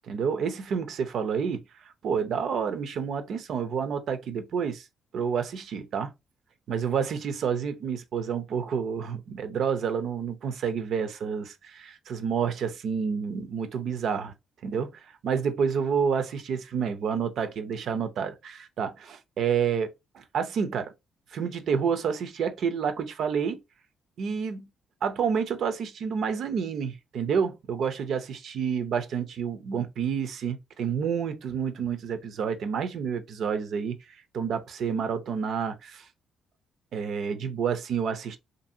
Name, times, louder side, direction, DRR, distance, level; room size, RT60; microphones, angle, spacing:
voice 1, 0.1-1.6 2.0-4.8 5.1-6.1 6.7-14.3 14.6-14.9 15.2-20.9 21.3-23.6 24.2-24.7 25.0-34.0 34.3-36.1 36.9-38.4, right 6 dB, 70° right, 0.5 m, -29 dB
2.7 x 2.6 x 2.6 m
cardioid pair, 90°, 0 cm